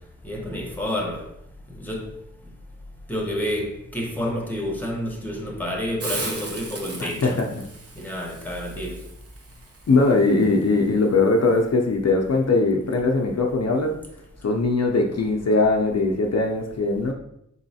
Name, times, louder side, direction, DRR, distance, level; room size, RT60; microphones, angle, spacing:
voice 1, 0.2-1.2 1.8-2.1 3.1-7.4 8.0-9.0, left 1 dB, 5° left, 0.9 m, -29 dB
Hiss, 6.0-11.6, right 3 dB, 50° right, 0.7 m, -38 dB
voice 2, 9.9-14.0 14.4-17.1, left 3 dB, 60° left, 0.5 m, -20 dB
4.1 x 3.0 x 2.7 m
wide cardioid pair, 60°, 30 cm